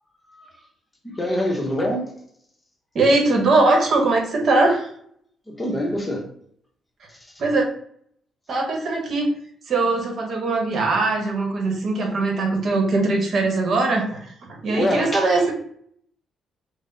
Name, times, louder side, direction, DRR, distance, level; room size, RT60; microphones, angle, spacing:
voice 1, 1.0-2.1 5.5-6.3 14.7-15.2, left 1 dB, 20° left, 0.9 m, -25 dB
voice 2, 2.9-4.9 7.4-7.6 8.5-9.3 9.7-14.3 14.6-15.5, right 3 dB, 55° right, 0.9 m, -20 dB
3.6 x 2.0 x 3.9 m
cardioid pair, 90°, 0 cm